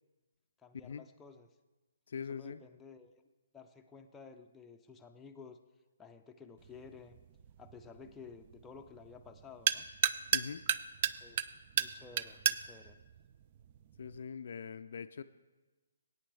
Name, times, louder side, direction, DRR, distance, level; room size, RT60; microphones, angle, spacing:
voice 1, 0.6-1.5 2.3-3.2 3.5-5.6 6.0-7.2 7.6-9.9 11.0-11.4 11.7-13.0, left 5 dB, 10° left, 4 dB, 0.5 m, -53 dB
voice 2, 2.1-2.6 10.3-10.6 14.0-15.2, left 6 dB, 60° left, 11 dB, 0.4 m, -42 dB
sound 1, 6.6-14.2, right 9 dB, 40° right, 0.3 m, -36 dB
17.0 x 8.9 x 3.4 m, 1.2 s
figure-of-eight pair, 140°, 0 cm